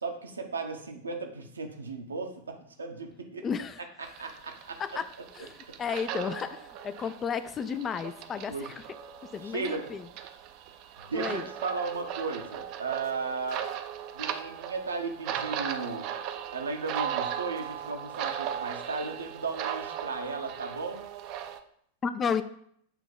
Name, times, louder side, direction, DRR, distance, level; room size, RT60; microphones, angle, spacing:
voice 1, 0.0-3.4 4.0-5.0 8.5-8.7 9.4-9.9 11.0-13.6 14.1-16.1 16.5-21.0, right 4 dB, 75° right, 4 dB, 0.8 m, -35 dB
voice 2, 3.4-3.8 4.8-8.7 9.3-10.0 11.1-11.4 22.0-22.4, left 6 dB, 25° left, 12 dB, 0.3 m, -33 dB
sound 1, 4.0-21.6, right 10 dB, 40° right, 0.5 m, -38 dB
7.3 x 3.0 x 5.2 m, 0.67 s
figure-of-eight pair, 90°, 0 cm